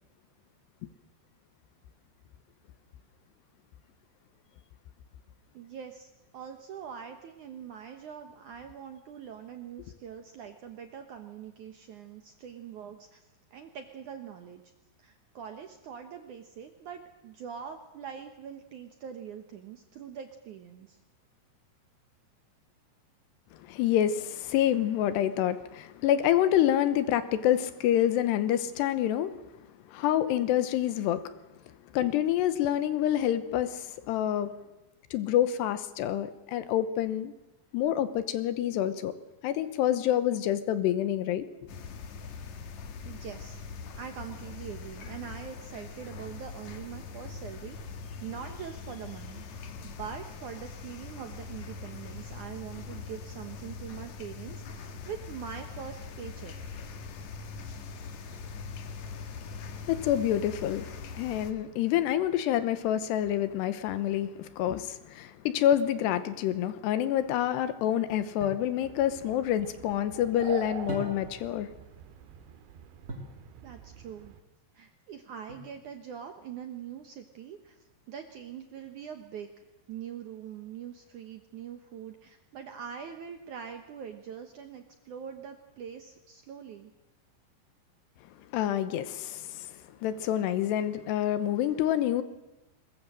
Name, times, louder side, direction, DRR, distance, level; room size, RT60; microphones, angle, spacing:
voice 1, 5.5-14.6 15.0-21.0 43.0-43.6 44.0-56.5 73.6-74.3 74.7-77.8 78.1-79.5 79.9-86.9, right 8 dB, 70° right, 7 dB, 1.9 m, -43 dB
voice 2, 23.7-29.3 29.9-31.3 31.9-34.5 35.1-37.3 37.7-39.1 39.4-41.5 59.9-60.9 61.2-71.7 88.5-92.2, left 11 dB, 80° left, 13 dB, 3.0 m, -27 dB
sound 1, 41.7-61.5, left 5 dB, 55° left, 2.3 m, -42 dB
sound 2, 68.4-68.7 70.9-71.5 73.1-73.4 75.5-76.0, right 1 dB, 25° right, 2.6 m, -40 dB
sound 3, 68.8-74.4, right 9 dB, 90° right, 3.7 m, -45 dB
21.5 x 21.0 x 7.6 m, 0.99 s
omnidirectional pair, 5.1 m